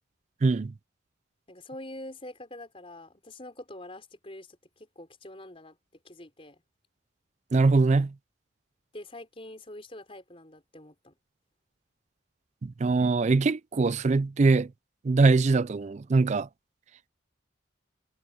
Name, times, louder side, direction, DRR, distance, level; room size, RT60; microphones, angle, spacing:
voice 1, 0.4-0.7 7.5-8.1 12.6-14.7 15.0-16.5, right 3 dB, 35° right, 0.4 m, -22 dB
voice 2, 1.5-5.8 6.0-6.6 8.9-11.1, left 1 dB, 30° left, 4.4 m, -45 dB
head